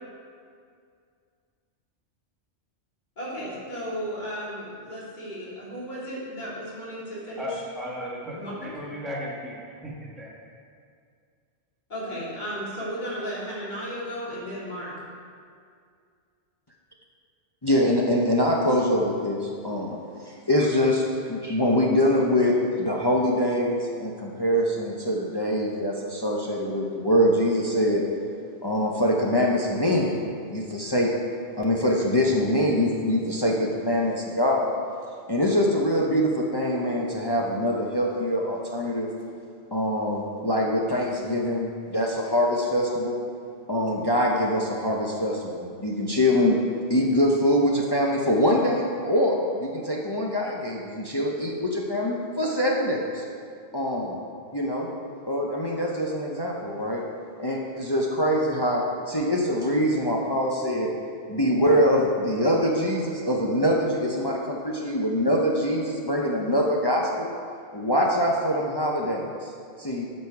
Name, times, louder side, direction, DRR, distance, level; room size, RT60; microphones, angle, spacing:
voice 1, 3.2-7.6 8.3-8.7 11.9-14.9, equal, 40° left, -9 dB, 3.0 m, -34 dB
voice 2, 7.4-9.6 9.8-10.3, equal, ahead, -5 dB, 1.5 m, -35 dB
voice 3, 17.6-21.0 21.3-28.0 28.6-30.2 30.5-31.1 31.6-34.7 35.3-39.1 39.7-43.2 43.7-46.6 46.9-53.2 53.7-54.2 54.5-54.9 55.3-57.0 57.4-60.9 61.3-67.3 67.7-69.5 69.8-70.1, equal, 25° left, -2 dB, 0.7 m, -24 dB
12.5 x 5.5 x 4.7 m, 2.2 s
omnidirectional pair, 1.2 m